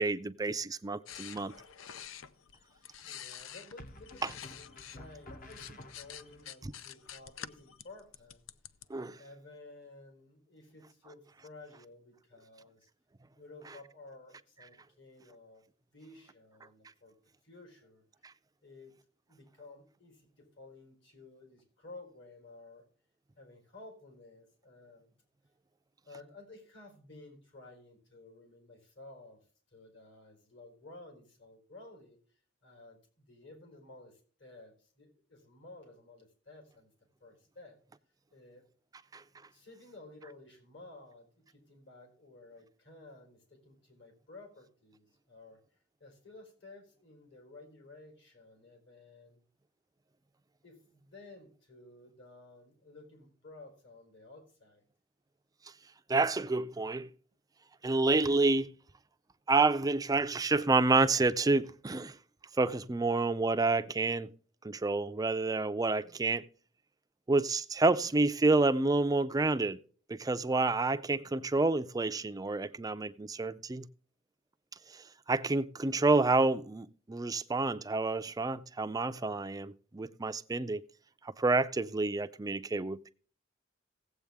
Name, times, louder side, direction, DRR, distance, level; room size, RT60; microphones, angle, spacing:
voice 1, 0.0-1.5 8.9-9.2 39.1-39.2 56.1-57.1 57.8-58.7 59.5-62.2 62.6-64.3 64.6-66.5 67.3-69.8 70.1-73.9 74.9-80.8 81.2-83.1, right 3 dB, 20° right, 0.4 m, -29 dB
sound 1, 1.1-5.0 5.3-8.9, left 9 dB, 85° left, 0.6 m, -48 dB
sound 2, 1.1-1.7 3.8-6.4, left 1 dB, 45° left, 1.0 m, -52 dB
voice 2, 3.0-8.4 9.2-12.9 13.3-15.6 15.9-17.2 17.4-18.0 18.6-18.9 19.3-22.9 23.4-25.1 26.0-29.4 29.7-36.9 37.2-37.8 38.3-38.7 38.9-39.0 39.5-45.6 46.0-49.4 50.6-54.8, left 2 dB, 65° left, 4.1 m, -54 dB
16.5 x 8.0 x 3.5 m
head